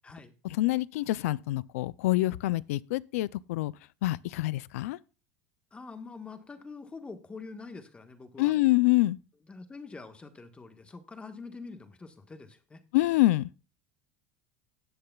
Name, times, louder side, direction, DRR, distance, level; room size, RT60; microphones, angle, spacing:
voice 1, 0.4-3.7 4.0-5.0 8.4-9.2 12.9-13.5, left 18 dB, 90° left, 0.4 m, -26 dB
voice 2, 5.7-8.5 9.5-12.8, left 4 dB, 15° left, 1.3 m, -45 dB
18.0 x 6.7 x 2.3 m
supercardioid pair, 130°, 8 cm